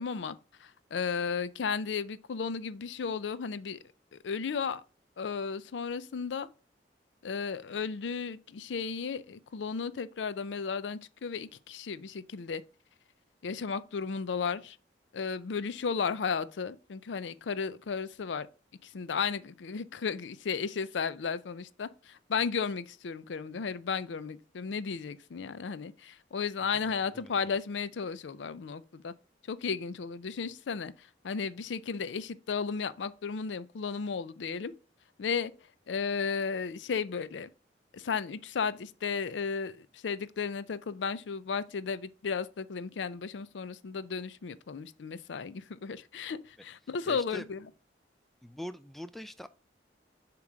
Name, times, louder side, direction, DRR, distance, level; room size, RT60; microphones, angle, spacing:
voice 1, 0.0-3.8 4.1-4.8 5.2-6.5 7.2-12.6 13.4-14.8 15.1-18.5 18.8-29.1 29.5-34.7 35.2-35.5 35.9-37.5 37.9-47.7, left 5 dB, 90° left, 0.5 m, -34 dB
voice 2, 26.8-27.3 47.1-47.4 48.4-49.5, equal, ahead, 0.3 m, -43 dB
7.2 x 3.0 x 5.0 m
head